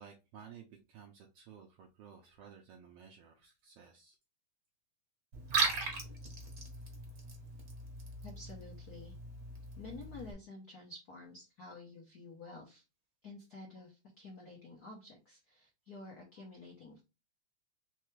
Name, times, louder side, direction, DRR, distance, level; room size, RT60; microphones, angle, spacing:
voice 1, 0.0-4.1, right 7 dB, 75° right, 3 dB, 1.4 m, -55 dB
Liquid, 5.3-10.3, right 4 dB, 50° right, 1.1 m, -38 dB
voice 2, 8.2-9.1 9.8-12.8 13.2-17.0, left 3 dB, 70° left, -1 dB, 0.9 m, -50 dB
4.7 x 3.4 x 3.1 m, 0.27 s
omnidirectional pair, 3.3 m